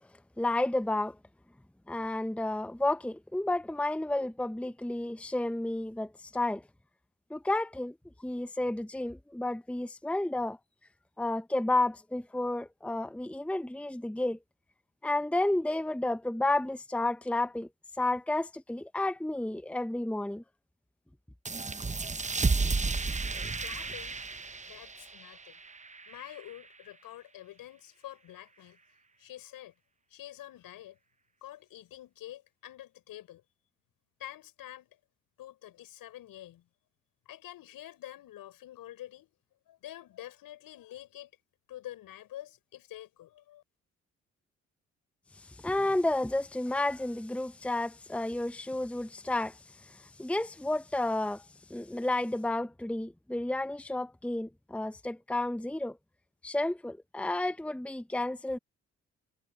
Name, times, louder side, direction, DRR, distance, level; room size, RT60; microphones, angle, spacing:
voice 1, 0.4-1.1 1.9-6.6 7.3-7.9 8.2-10.6 11.2-14.4 15.0-17.7 18.0-20.4 45.4-51.4 51.7-56.0 56.4-58.6, left 2 dB, 5° left, 1.0 m, -31 dB
sound 1, 21.4-26.7, right 4 dB, 20° right, 1.1 m, -33 dB
voice 2, 23.6-24.2 24.7-25.6 26.1-28.8 29.2-29.7 30.1-31.0 31.4-33.4 34.2-34.9 35.4-36.7 37.3-39.3 39.7-41.3 41.7-43.6, left 13 dB, 70° left, 7.2 m, -47 dB
hypercardioid pair, 45°, 35 cm